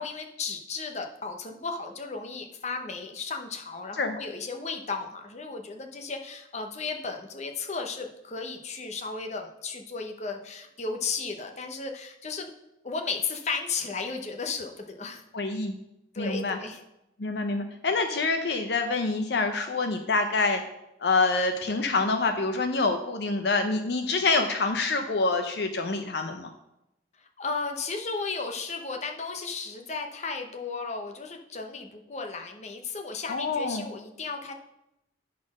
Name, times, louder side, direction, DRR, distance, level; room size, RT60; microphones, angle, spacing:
voice 1, 0.0-12.5 12.8-15.2 16.1-16.8 27.4-34.5, left 4 dB, 40° left, 4 dB, 0.8 m, -34 dB
voice 2, 15.3-15.8 16.2-16.6 17.2-20.6 21.0-26.5 33.3-33.9, left 3 dB, 65° left, 6 dB, 0.6 m, -26 dB
9.4 x 4.2 x 6.0 m, 0.88 s
head